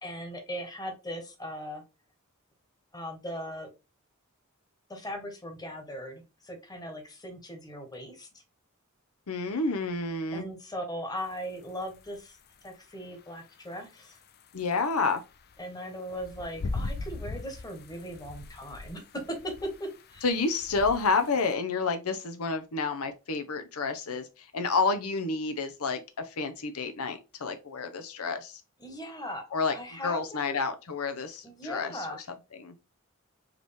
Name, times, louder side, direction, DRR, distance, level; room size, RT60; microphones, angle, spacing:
voice 1, 0.0-1.8 2.9-3.7 4.9-8.4 10.3-12.4 12.6-14.2 15.6-20.2 28.8-30.6 31.4-32.2, equal, 20° left, 1.3 m, -39 dB
voice 2, 9.3-10.4 14.5-15.2 20.2-28.6 29.5-29.7 30.0-32.1 32.6-32.7, left 4 dB, 90° left, 0.8 m, -29 dB
sound 1, 11.3-21.5, left 3 dB, 45° left, 0.5 m, -41 dB
4.9 x 3.1 x 3.4 m
head